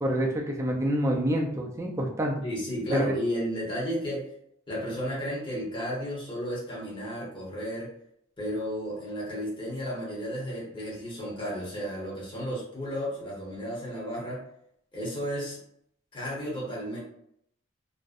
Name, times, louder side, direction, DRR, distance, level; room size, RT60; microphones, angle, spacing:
voice 1, 0.0-2.4 2.9-3.1, equal, 15° right, 0 dB, 0.4 m, -27 dB
voice 2, 2.4-4.2 4.7-7.9 8.4-14.4 14.9-15.6 16.1-17.0, equal, 25° left, -5 dB, 0.9 m, -33 dB
2.6 x 2.1 x 2.4 m, 0.70 s
head